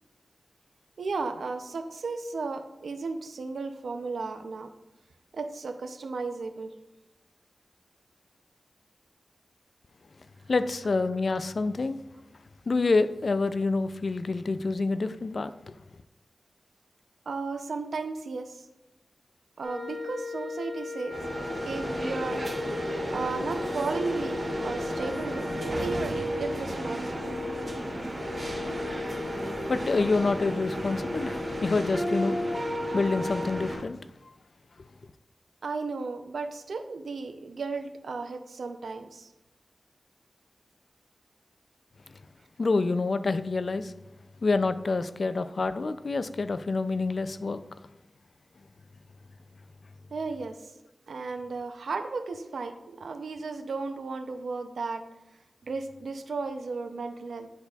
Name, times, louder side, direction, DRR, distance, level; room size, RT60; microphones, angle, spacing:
voice 1, 1.0-4.7 5.3-6.7 17.3-18.6 19.6-21.2 21.6-22.4 23.1-27.4 35.6-39.3 50.1-50.6 51.1-55.0 55.6-57.5, right 4 dB, 85° right, 7 dB, 0.5 m, -34 dB
voice 2, 10.5-12.0 12.7-15.7 29.7-32.4 32.9-34.0 42.6-43.9 44.4-47.6, left 3 dB, 65° left, 12 dB, 0.3 m, -27 dB
sound 1, 19.6-33.7, left 3 dB, ahead, 2.0 m, -37 dB
sound 2, 21.1-33.8, right 1 dB, 35° right, 1.7 m, -33 dB
10.0 x 4.0 x 2.3 m, 0.95 s
cardioid pair, 50°, 0 cm